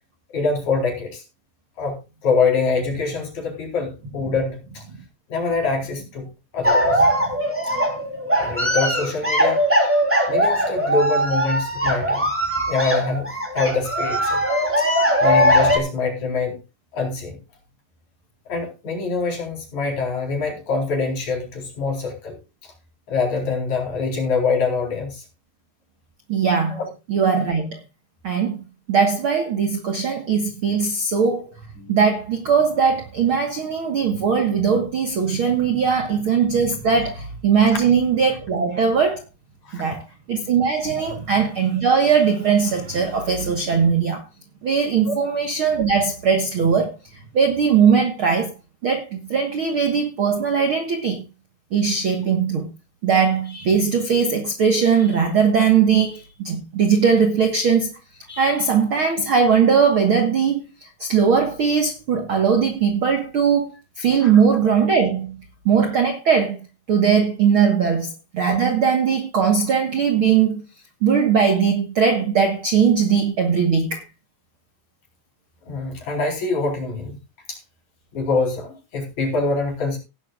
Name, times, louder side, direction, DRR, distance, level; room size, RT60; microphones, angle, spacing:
voice 1, 0.3-1.2 1.8-4.8 5.3-6.3 6.5-7.1 8.4-9.6 10.3-12.3 12.7-14.4 14.8-14.9 15.2-16.6 16.9-17.4 18.5-22.4 22.6-22.7 23.1-25.2 26.7-26.8 31.8-31.9 39.7-40.0 41.0-41.1 45.1-45.2 64.2-64.4 75.7-77.1 77.5-77.6 78.1-80.0, left 4 dB, 45° left, 5.3 m, -25 dB
sound 1, 6.6-15.8, equal, 5° right, 2.9 m, -20 dB
voice 2, 26.3-26.8 27.1-27.7 28.2-28.6 28.9-31.5 31.9-39.2 39.7-44.2 44.6-46.9 47.3-48.5 48.8-51.2 51.7-52.7 53.0-58.0 58.3-63.7 64.0-65.3 65.6-66.6 66.9-70.6 71.0-74.0, right 6 dB, 70° right, 1.2 m, -19 dB
17.5 x 11.0 x 2.4 m
omnidirectional pair, 4.6 m